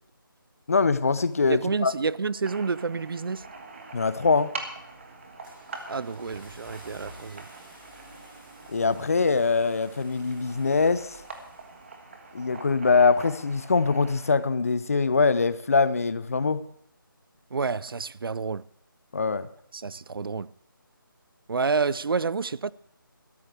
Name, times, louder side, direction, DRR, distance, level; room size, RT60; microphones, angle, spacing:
voice 1, 0.7-1.9 3.9-4.6 8.7-11.2 12.3-16.6 19.1-19.5, left 4 dB, 40° left, 0.5 m, -23 dB
voice 2, 1.5-3.5 5.9-7.4 17.5-18.7 19.7-20.5 21.5-22.7, right 4 dB, 80° right, 0.4 m, -29 dB
sound 1, 2.4-14.4, right 3 dB, 35° right, 1.5 m, -44 dB
Car / Engine starting, 5.1-12.0, right 1 dB, 5° right, 2.6 m, -52 dB
17.0 x 13.0 x 3.4 m
figure-of-eight pair, 170°, 12 cm